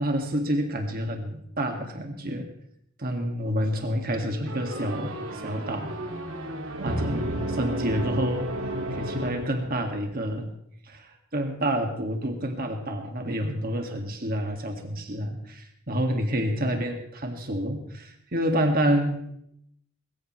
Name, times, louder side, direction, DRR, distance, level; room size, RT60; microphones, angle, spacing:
voice 1, 0.0-2.5 3.0-5.9 6.8-8.5 8.9-10.5 10.8-19.3, equal, 45° right, 3 dB, 1.8 m, -28 dB
sound 1, 4.5-10.0, right 1 dB, 65° right, 2.1 m, -32 dB
21.5 x 15.0 x 3.1 m, 0.73 s
head